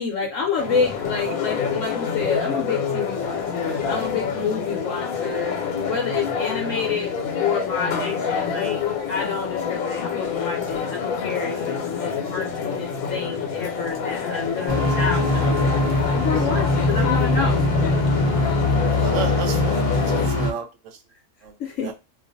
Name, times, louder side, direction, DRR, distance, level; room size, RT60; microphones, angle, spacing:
voice 1, 0.0-5.5 5.8-8.8 9.1-15.8 16.1-17.7 21.6-21.9, left 5 dB, 70° left, 0 dB, 1.0 m, -28 dB
sound 1, 0.6-20.3, left 6 dB, 85° left, 1.1 m, -27 dB
sound 2, 14.7-20.5, left 2 dB, 25° left, 0.6 m, -21 dB
voice 2, 19.0-19.9 20.1-20.7 21.4-21.5 21.8-21.9, right 6 dB, 70° right, 6 dB, 0.9 m, -31 dB
2.5 x 2.3 x 2.6 m, 0.25 s
omnidirectional pair, 1.5 m